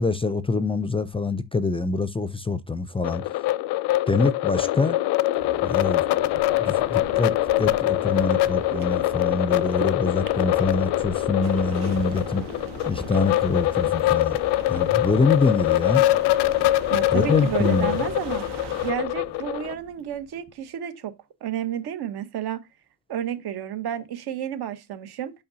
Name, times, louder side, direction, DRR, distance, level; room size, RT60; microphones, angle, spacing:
voice 1, 0.0-3.4 4.1-5.0 5.6-6.0 6.6-12.4 12.9-14.4 14.7-16.0 17.1-18.0, left 3 dB, 15° left, 0.4 m, -25 dB
sound 1, 3.0-19.7, left 16 dB, 90° left, 0.6 m, -24 dB
sound 2, 5.3-20.5, right 6 dB, 55° right, 1.4 m, -42 dB
sound 3, 5.4-18.9, right 4 dB, 90° right, 1.3 m, -42 dB
voice 2, 16.9-18.4 18.8-21.1 21.4-22.6 23.1-25.3, right 10 dB, 70° right, 1.3 m, -31 dB
6.8 x 5.6 x 2.7 m
cardioid pair, 115°, 40 cm